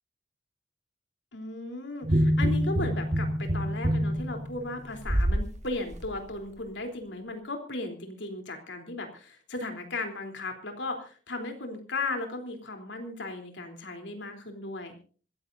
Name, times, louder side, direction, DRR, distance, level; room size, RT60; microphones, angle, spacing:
voice 1, 1.3-15.0, left 2 dB, 80° left, 4 dB, 3.5 m, -36 dB
sound 1, 2.0-5.5 5.9-6.1, equal, 40° right, 1.5 m, -26 dB
26.0 x 14.5 x 2.7 m, 0.39 s
head